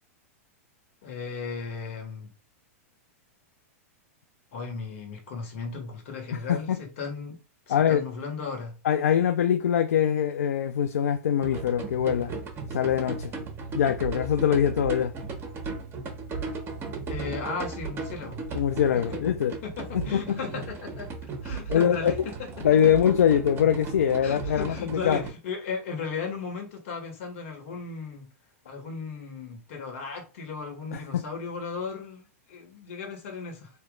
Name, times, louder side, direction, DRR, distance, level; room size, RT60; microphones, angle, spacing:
voice 1, 1.0-2.3 4.5-7.4 7.7-8.7 17.1-18.4 19.6-21.1 21.4-22.5 24.2-28.3 28.7-33.7, left 5 dB, 60° left, 1.8 m, -36 dB
voice 2, 6.3-6.8 7.7-8.0 8.8-12.3 12.7-13.3 13.7-15.1 18.5-19.6 20.1-20.4 21.7-22.3 22.6-25.2 30.9-31.2, left 9 dB, 80° left, 0.4 m, -23 dB
sound 1, 11.4-25.3, right 4 dB, 30° right, 1.3 m, -36 dB
3.2 x 2.9 x 3.7 m
hypercardioid pair, 115°, 8 cm